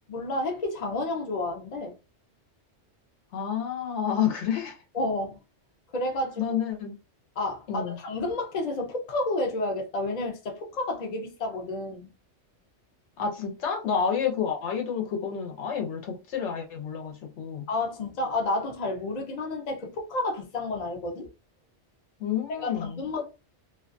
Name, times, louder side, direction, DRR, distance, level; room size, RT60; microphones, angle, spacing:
voice 1, 0.1-1.9 4.9-5.4 5.9-6.6 7.4-12.1 17.7-21.3 22.5-23.3, left 2 dB, 45° left, 0.6 m, -30 dB
voice 2, 3.3-4.8 6.4-6.9 7.7-8.0 13.2-17.6 22.2-23.0, left 7 dB, 80° left, 1.0 m, -29 dB
2.5 x 2.2 x 2.5 m
omnidirectional pair, 1.2 m